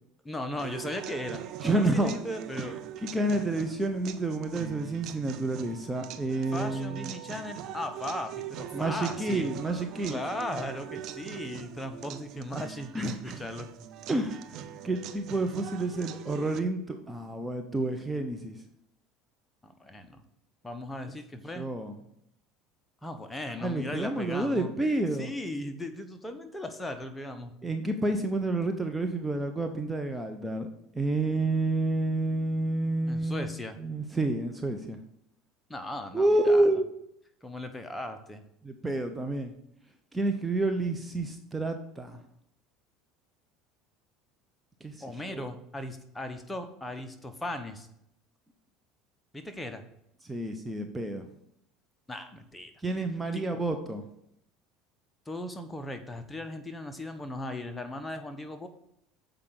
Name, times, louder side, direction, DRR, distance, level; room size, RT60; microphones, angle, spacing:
voice 1, 0.2-1.4 1.7-2.7 6.5-9.5 10.1-12.9 13.2-13.7 19.6-20.2 20.6-21.7 23.0-24.7 25.2-27.5 33.1-33.8 35.7-36.7 37.4-38.4 45.0-47.9 49.3-49.8 52.1-52.7 53.3-53.4 55.3-58.7, left 1 dB, 15° left, 8 dB, 1.1 m, -37 dB
sound 1, 0.6-16.6, right 10 dB, 55° right, 0.6 m, -42 dB
voice 2, 1.6-2.2 2.6-2.7 3.0-7.1 8.7-10.2 12.9-13.4 14.1-18.6 21.5-22.0 23.6-25.3 27.6-30.7 30.9-33.5 33.8-35.0 36.1-36.9 38.6-39.5 40.1-42.2 44.8-45.0 45.3-45.4 50.2-51.2 52.8-54.0, right 2 dB, 10° right, 6 dB, 0.9 m, -29 dB
sound 2, 5.5-10.6, right 8 dB, 40° right, 3.3 m, -54 dB
7.5 x 5.0 x 6.4 m, 0.74 s
hypercardioid pair, 80°, 0 cm